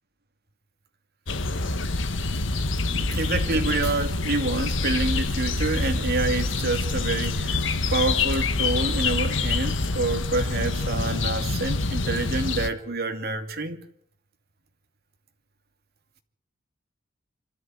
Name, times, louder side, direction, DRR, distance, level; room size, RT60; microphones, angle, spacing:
sound 1, 1.3-12.7, left 3 dB, 85° left, 1.5 m, -26 dB
voice 1, 2.9-13.8, right 3 dB, 55° right, 2.7 m, -28 dB
25.5 x 14.0 x 9.3 m
head